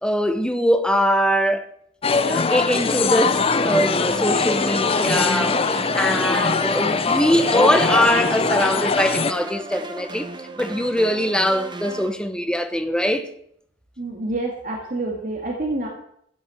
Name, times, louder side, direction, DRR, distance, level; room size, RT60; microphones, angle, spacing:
voice 1, 0.0-1.7 2.3-10.3 10.6-13.3, equal, 5° left, 1.0 m, -22 dB
sound 1, 2.0-9.3, left 4 dB, 35° left, 0.6 m, -21 dB
sound 2, 4.1-12.1, right 2 dB, 25° right, 1.2 m, -35 dB
voice 2, 14.0-15.9, right 2 dB, 50° right, 2.1 m, -27 dB
15.0 x 6.0 x 7.7 m
head